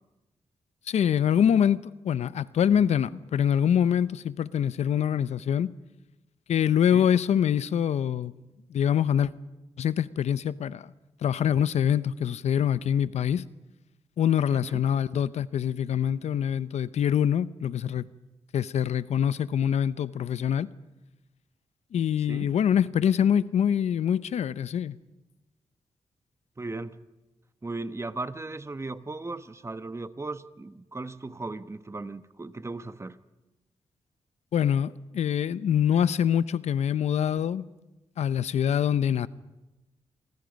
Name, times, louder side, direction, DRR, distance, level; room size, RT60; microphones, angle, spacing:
voice 1, 0.9-5.7 6.5-8.3 8.7-9.3 9.8-10.9 11.2-13.4 14.2-18.1 18.5-20.7 21.9-25.0 34.5-37.7 38.2-39.3, left 9 dB, 80° left, 0.7 m, -25 dB
voice 2, 14.5-14.8 22.3-22.5 26.6-27.0 27.6-33.2, right 2 dB, 25° right, 1.2 m, -37 dB
28.0 x 24.0 x 5.3 m
cardioid pair, 60°, 11 cm